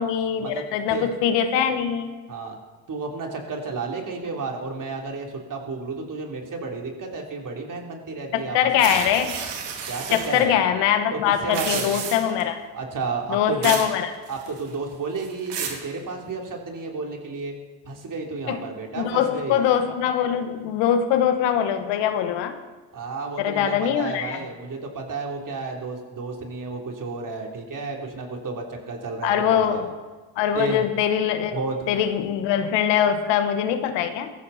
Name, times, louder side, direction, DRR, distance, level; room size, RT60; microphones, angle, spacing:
voice 1, 0.0-2.2 8.3-9.4 10.1-12.6 13.3-14.1 18.5-18.6 19.0-22.6 23.4-24.4 29.2-29.9 30.4-31.6 31.9-34.3, left 9 dB, 85° left, 9 dB, 1.4 m, -22 dB
voice 2, 2.9-8.9 9.9-10.6 11.1-12.0 12.7-13.8 14.3-17.5 17.8-19.6 22.9-29.8 30.5-30.8 31.5-31.9, right 4 dB, 50° right, 1 dB, 3.6 m, -32 dB
sound 1, 8.8-10.4 11.4-12.4 13.6-13.9 14.3-14.7 15.2-15.8, right 6 dB, 75° right, 2.7 m, -31 dB
17.0 x 14.5 x 4.3 m, 1.3 s
supercardioid pair, 65°, 42 cm